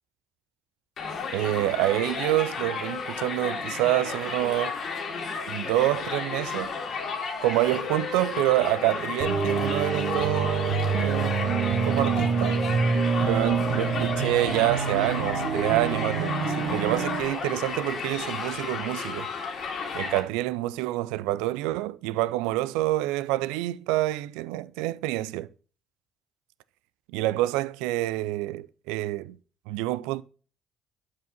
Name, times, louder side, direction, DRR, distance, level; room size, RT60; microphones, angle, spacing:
Crowd, 1.0-20.2, left 5 dB, 65° left, 2.2 m, -33 dB
voice 1, 1.3-4.8 5.5-6.7 7.4-12.6 13.2-19.3 19.9-25.5 27.1-29.4 29.7-30.2, right 16 dB, 85° right, 0.3 m, -27 dB
sound 1, 9.2-17.2, right 5 dB, 70° right, 1.2 m, -26 dB
8.2 x 4.8 x 5.9 m
hypercardioid pair, 55°, 0 cm